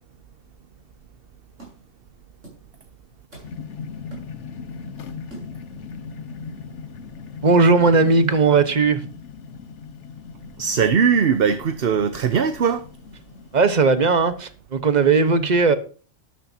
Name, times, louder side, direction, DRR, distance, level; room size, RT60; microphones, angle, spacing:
sound 1, 1.6-2.0 2.4-2.7 3.1-3.7 4.1-4.7 5.3-5.7, right 3 dB, 85° right, 8.0 m, -44 dB
sound 2, 3.4-13.8, left 5 dB, 75° left, 1.4 m, -39 dB
voice 1, 7.4-9.1 13.5-15.8, right 4 dB, 40° right, 1.3 m, -17 dB
voice 2, 10.6-12.8, right 6 dB, 55° right, 1.0 m, -20 dB
12.5 x 12.0 x 2.8 m
omnidirectional pair, 1.2 m